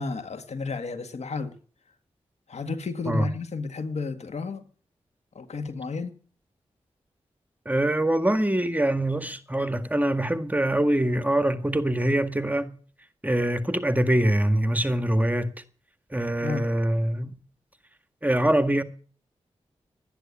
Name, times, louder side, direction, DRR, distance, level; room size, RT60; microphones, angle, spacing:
voice 1, 0.0-1.6 2.5-4.7 5.4-6.2 16.4-16.7, left 4 dB, 70° left, 1.9 m, -32 dB
voice 2, 7.7-12.8 13.2-15.5 16.1-17.4 18.2-18.8, right 1 dB, 15° right, 1.8 m, -24 dB
12.5 x 9.9 x 8.7 m
cardioid pair, 50°, 12 cm